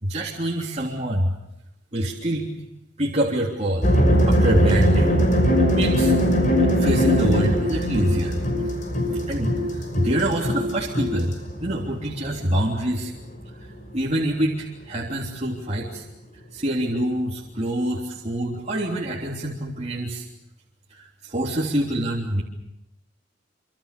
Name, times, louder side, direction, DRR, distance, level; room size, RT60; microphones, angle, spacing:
voice 1, 0.0-1.3 1.9-2.5 3.0-3.9 4.2-5.1 5.7-6.2 6.7-8.4 9.1-11.3 11.6-13.1 13.6-16.0 16.5-20.2 20.9-22.4, right 1 dB, 35° right, -3 dB, 3.3 m, -26 dB
sound 1, 3.8-12.7, equal, 45° left, 6.2 m, -21 dB
26.0 x 26.0 x 6.8 m, 0.87 s
head